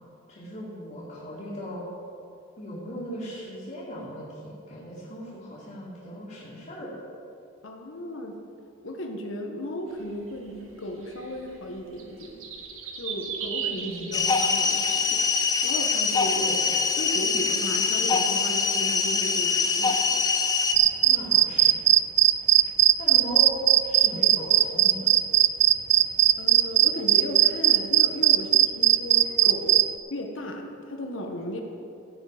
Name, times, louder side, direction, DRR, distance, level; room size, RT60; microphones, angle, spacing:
voice 1, 0.3-1.9 2.6-6.9 13.5-14.3 16.4-16.6 21.0-21.8 23.0-25.1, equal, 40° left, -10 dB, 2.7 m, -38 dB
voice 2, 7.6-8.3 8.8-12.4 13.0-15.2 15.6-16.5 17.0-20.3 26.4-31.6, equal, 70° left, 3 dB, 1.4 m, -35 dB
sound 1, 10.0-15.6, right 7 dB, 80° right, 1.5 m, -37 dB
sound 2, 14.1-20.8, left 5 dB, 20° left, 0.6 m, -24 dB
sound 3, 20.8-29.8, right 11 dB, 35° right, 0.3 m, -18 dB
16.0 x 7.3 x 5.1 m, 2.7 s
head